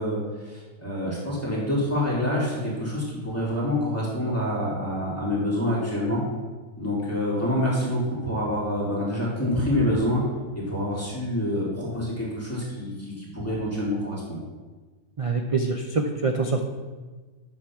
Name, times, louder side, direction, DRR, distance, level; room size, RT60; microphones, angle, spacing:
voice 1, 0.0-6.2 6.8-10.2 10.5-14.4, left 1 dB, 10° left, -7 dB, 2.6 m, -27 dB
voice 2, 15.2-16.6, right 3 dB, 45° right, 3 dB, 0.4 m, -25 dB
8.4 x 6.2 x 6.0 m, 1.3 s
omnidirectional pair, 1.5 m